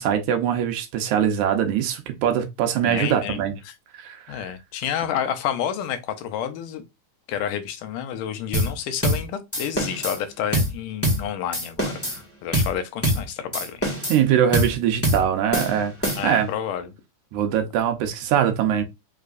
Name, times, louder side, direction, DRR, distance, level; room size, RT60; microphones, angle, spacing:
voice 1, 0.0-3.5 3.9-4.5 14.1-15.9 16.2-16.5 17.3-18.8, right 9 dB, 75° right, 2.1 m, -22 dB
voice 2, 2.8-3.7 4.3-6.8 7.3-14.0 16.2-17.0, left 9 dB, 80° left, 2.2 m, -30 dB
sound 1, 8.5-8.7 9.0-9.2 9.5-10.2 10.5-10.7 11.0-11.2 11.5-12.2 12.5-12.7 13.0-13.2 13.5-14.2 14.5-14.7 15.0-15.2 15.5-16.4, equal, 5° left, 1.2 m, -24 dB
5.5 x 3.3 x 2.5 m
omnidirectional pair, 3.7 m